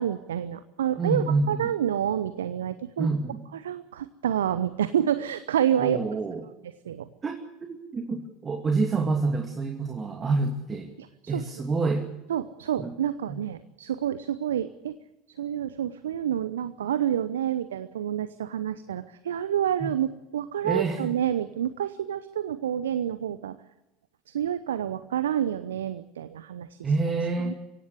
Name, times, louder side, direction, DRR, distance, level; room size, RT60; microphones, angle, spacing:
voice 1, 0.0-3.1 3.5-6.0 6.8-7.1 11.0-11.4 12.3-15.0 15.4-23.6 24.3-26.9 27.4-27.5, right 10 dB, 75° right, 14 dB, 0.8 m, -28 dB
voice 2, 1.0-1.6 3.0-3.4 5.8-6.4 7.2-10.9 11.3-12.0 12.8-12.9 13.3-13.4 20.6-21.0 26.8-27.5, right 3 dB, 25° right, 4 dB, 2.5 m, -27 dB
24.0 x 17.0 x 8.3 m, 0.98 s
figure-of-eight pair, 75°, 0 cm